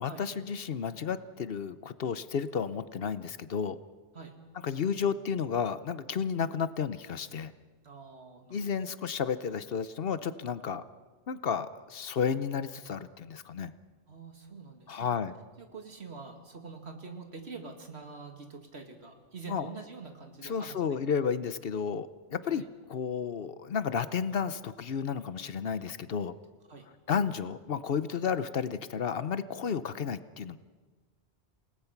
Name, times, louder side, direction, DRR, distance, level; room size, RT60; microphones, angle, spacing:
voice 1, 0.0-3.8 4.6-7.5 8.5-10.8 11.3-13.7 14.9-15.3 19.5-19.7 20.4-26.3 27.1-30.6, left 6 dB, 65° left, 14 dB, 1.0 m, -32 dB
voice 2, 7.8-8.8 14.1-15.2 15.6-20.8 22.5-22.6 26.7-26.9, right 4 dB, 75° right, 4 dB, 2.5 m, -45 dB
28.0 x 19.0 x 5.9 m, 1.4 s
omnidirectional pair, 1.1 m